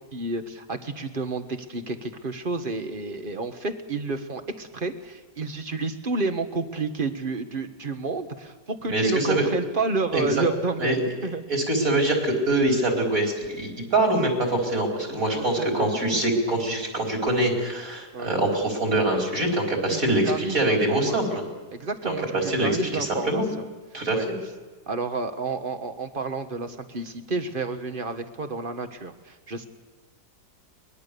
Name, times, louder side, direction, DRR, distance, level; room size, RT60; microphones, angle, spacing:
voice 1, 0.1-11.4 15.1-16.2 18.1-18.4 19.9-21.4 21.7-23.6 24.1-24.3 24.9-29.7, right 3 dB, 35° right, 8 dB, 1.5 m, -30 dB
voice 2, 8.9-9.4 10.1-10.5 10.8-11.0 11.5-21.3 22.0-23.5 23.9-24.3, right 1 dB, 55° right, 0 dB, 5.0 m, -24 dB
24.0 x 21.0 x 6.9 m, 1.3 s
omnidirectional pair, 1.8 m